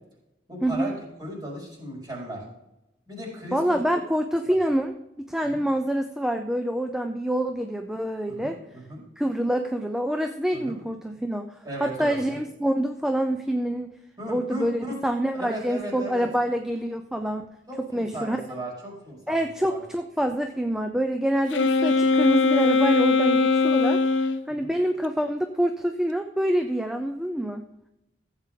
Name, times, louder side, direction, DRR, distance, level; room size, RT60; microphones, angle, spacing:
voice 1, 0.5-2.4 3.1-3.8 4.5-4.6 5.4-5.6 8.3-9.0 10.5-10.8 11.6-12.4 14.2-15.0 15.3-16.3 17.7-19.8 24.5-24.7, right 1 dB, 25° right, -4 dB, 4.6 m, -36 dB
voice 2, 3.5-4.9 5.3-8.6 9.2-11.5 11.8-13.9 14.3-17.5 17.9-18.4 19.3-24.0 24.5-27.6, right 1 dB, 5° right, 6 dB, 0.5 m, -26 dB
Wind instrument woodwind instrument, 21.5-24.4, left 4 dB, 70° left, 0.6 m, -20 dB
15.0 x 8.1 x 3.8 m, 0.90 s
head